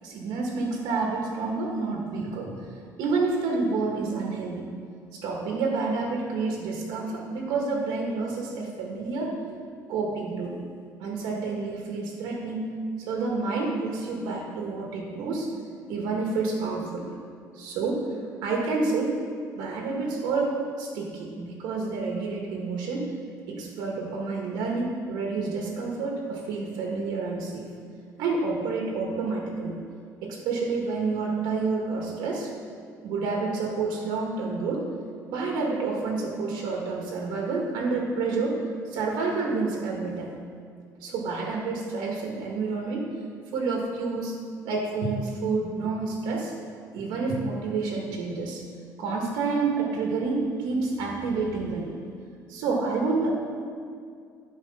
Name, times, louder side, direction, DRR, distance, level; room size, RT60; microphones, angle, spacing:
voice 1, 0.0-2.5 3.0-4.7 5.1-9.4 9.9-10.6 11.0-12.6 13.0-15.5 15.9-17.1 17.5-18.0 18.4-19.2 19.6-23.1 23.5-27.7 28.2-29.8 30.2-32.5 33.0-34.9 35.3-38.6 38.9-40.3 41.0-43.1 43.5-44.4 44.6-46.5 46.9-48.6 49.0-51.9 52.5-53.3, right 4 dB, 85° right, -1 dB, 1.7 m, -29 dB
12.0 x 4.8 x 5.5 m, 2.2 s
cardioid pair, 115°, 7 cm